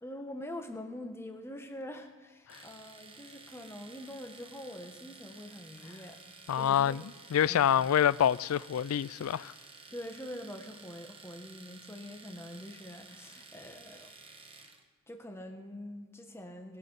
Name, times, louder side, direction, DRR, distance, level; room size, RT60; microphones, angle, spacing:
voice 1, 0.0-6.2 6.6-7.0 7.5-7.7 9.9-14.1 15.1-16.8, left 1 dB, 10° left, 1.2 m, -44 dB
Domestic sounds home sounds, 2.5-14.8, right 4 dB, 25° right, 1.2 m, -53 dB
voice 2, 6.5-7.0 7.3-9.5, left 9 dB, 80° left, 0.3 m, -26 dB
20.5 x 7.2 x 5.6 m
head